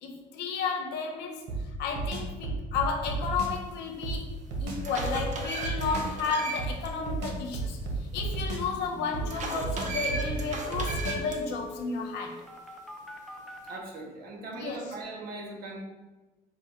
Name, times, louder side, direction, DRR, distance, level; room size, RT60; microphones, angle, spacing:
voice 1, 0.0-1.4 1.8-4.3 4.6-12.4 14.5-14.8, left 5 dB, 85° left, 2 dB, 0.7 m, -33 dB
sound 1, 1.5-3.6 4.0-6.2 6.6-8.8 9.1-11.4, right 3 dB, 80° right, 0.9 m, -33 dB
sound 2, 3.9-4.0 4.5-6.9 7.2-7.3 9.3-11.4, right 3 dB, 45° right, 0.7 m, -36 dB
sound 3, 8.9-9.0 9.2-13.8, left 1 dB, ahead, 0.6 m, -46 dB
voice 2, 13.6-15.8, right 2 dB, 65° right, 1 dB, 1.1 m, -40 dB
5.2 x 2.2 x 4.3 m, 1.2 s
cardioid pair, 110°, 17 cm